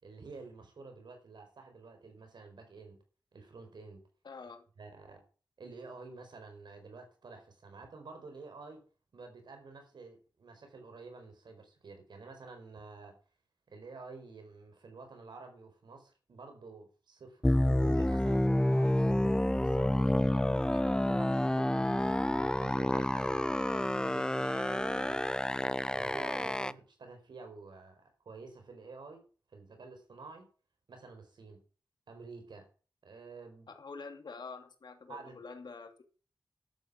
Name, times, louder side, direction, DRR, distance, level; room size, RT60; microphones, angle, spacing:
voice 1, 0.0-3.0 3.3-4.0 4.8-5.2 5.6-8.8 9.1-13.2 13.7-19.3 19.6-25.2 25.6-29.2 29.5-30.5 30.9-31.6 32.1-32.7 33.0-33.7 35.1-35.4, right 3 dB, 85° right, 4.8 m, -50 dB
voice 2, 4.2-4.6 33.7-36.0, left 4 dB, 75° left, 2.7 m, -46 dB
sound 1, 17.4-26.7, left 1 dB, 10° left, 0.6 m, -29 dB
11.5 x 9.2 x 7.4 m
wide cardioid pair, 70°, 7 cm